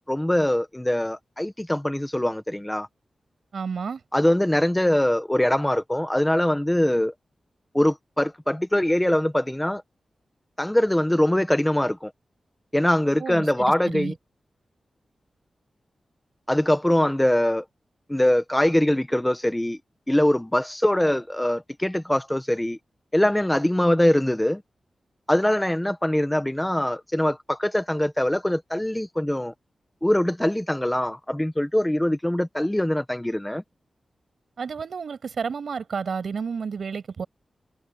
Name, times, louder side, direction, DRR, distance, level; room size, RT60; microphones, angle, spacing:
voice 1, 0.1-2.9 4.1-7.1 7.7-9.8 10.6-12.1 12.7-14.1 16.5-17.6 18.1-19.8 20.1-22.8 23.1-24.6 25.3-29.5 30.0-33.6, left 1 dB, 5° left, 1.2 m, -22 dB
voice 2, 3.5-4.0 13.2-14.1 34.6-37.3, right 5 dB, 65° right, 6.2 m, -31 dB
wide cardioid pair, 140°, 0 cm